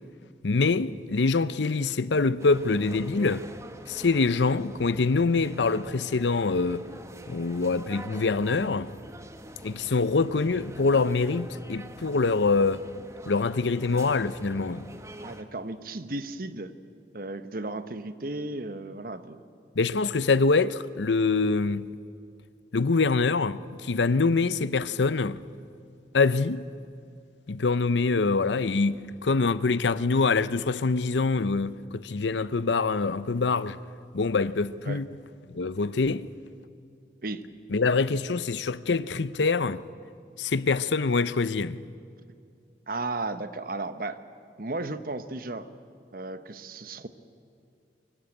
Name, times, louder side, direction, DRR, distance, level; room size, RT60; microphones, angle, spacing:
voice 1, 0.4-3.4 3.9-6.8 7.3-8.9 9.6-12.8 13.3-14.9 19.8-21.9 22.7-25.4 26.1-26.7 27.5-33.8 34.1-35.1 35.5-36.3 37.7-39.8 40.4-41.8, left 4 dB, 90° left, 0.7 m, -25 dB
sound 1, 2.4-15.4, right 1 dB, 15° right, 1.1 m, -45 dB
voice 2, 15.2-16.7 17.1-19.4 34.8-35.0 37.2-37.4 42.9-44.2 44.6-45.7 46.1-47.1, right 2 dB, 55° right, 1.1 m, -34 dB
24.0 x 23.0 x 8.7 m
head